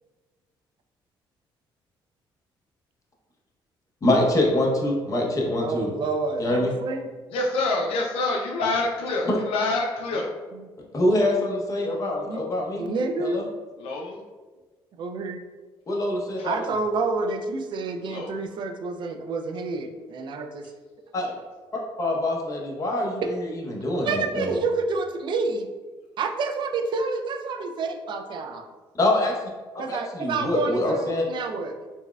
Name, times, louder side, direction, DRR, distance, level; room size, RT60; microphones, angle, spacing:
voice 1, 4.0-5.9 6.4-6.7 9.3-9.4 10.9-12.9 13.2-13.4 15.9-16.6 21.1-21.4 22.0-24.5 28.9-29.3 29.9-31.2, left 1 dB, 35° left, -1 dB, 0.8 m, -24 dB
voice 2, 5.6-7.1 10.5-10.7 12.3-12.4 12.8-13.4 15.0-15.4 16.4-20.7 21.7-21.8 24.0-25.7 26.2-28.7 29.8-31.7, right 3 dB, 55° right, 5 dB, 0.4 m, -29 dB
voice 3, 7.3-10.3 13.8-14.2 16.4-16.5 18.1-18.3, left 2 dB, 80° left, 0 dB, 0.4 m, -26 dB
4.1 x 2.1 x 2.3 m, 1.4 s
cardioid pair, 85°, 10 cm